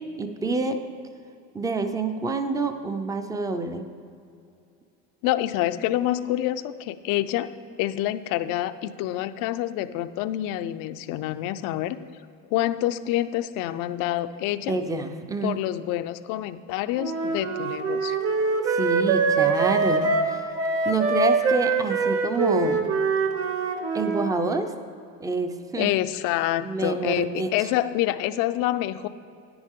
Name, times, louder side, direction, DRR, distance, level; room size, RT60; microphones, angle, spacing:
voice 1, 0.2-0.8 1.5-3.9 14.7-15.6 18.7-20.5 20.8-22.9 23.9-24.7 25.2-25.9 26.6-27.5, right 3 dB, 10° right, 8 dB, 0.5 m, -27 dB
voice 2, 5.2-7.5 7.8-12.0 12.5-14.8 15.4-18.2 25.8-29.1, left 14 dB, 60° left, 12 dB, 0.5 m, -27 dB
Wind instrument woodwind instrument, 17.0-24.3, right 4 dB, 40° right, 1.1 m, -24 dB
9.8 x 9.5 x 3.7 m, 2.5 s
supercardioid pair, 120°, 37 cm